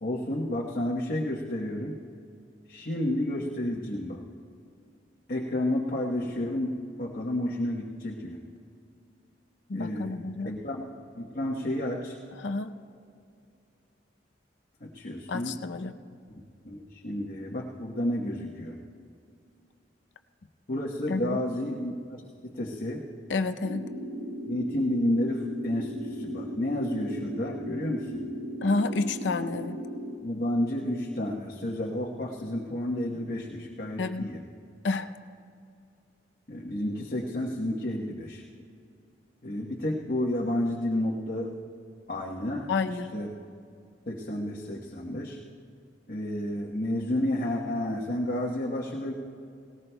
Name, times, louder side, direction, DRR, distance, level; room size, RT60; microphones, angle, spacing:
voice 1, 0.0-2.0 2.7-4.2 5.3-8.4 9.7-10.2 10.4-10.9 11.2-12.2 14.8-15.6 16.3-18.8 20.7-23.0 24.5-28.2 30.2-34.4 36.5-38.4 39.4-41.5 42.1-43.3 44.1-45.4 46.1-49.1, left 1 dB, 55° left, -4 dB, 1.1 m, -31 dB
voice 2, 9.7-10.6 12.4-12.7 15.3-15.9 21.1-21.4 23.3-23.9 28.6-29.8 34.0-34.3 34.8-35.1 42.7-43.1, left 3 dB, 85° left, 8 dB, 0.6 m, -29 dB
sound 1, 23.6-30.2, equal, 85° right, 1.1 m, -37 dB
19.0 x 18.5 x 2.3 m, 2.4 s
head